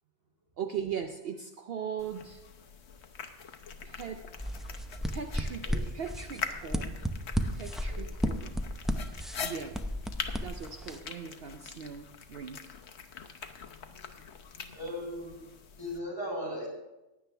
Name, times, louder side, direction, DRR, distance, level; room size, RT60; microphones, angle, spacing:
voice 1, 0.6-2.4 3.8-4.2 5.1-5.7 5.9-7.0 7.5-8.6 9.4-9.8 10.4-12.6, right 7 dB, 60° right, 6 dB, 0.8 m, -39 dB
sound 1, 2.0-16.0, left 6 dB, 65° left, 1.1 m, -44 dB
sound 2, 4.4-11.0, equal, ahead, 0.3 m, -34 dB
voice 2, 14.7-15.5 15.8-16.7, equal, 20° left, -4 dB, 4.7 m, -38 dB
15.5 x 9.8 x 3.4 m, 1.0 s
omnidirectional pair, 1.2 m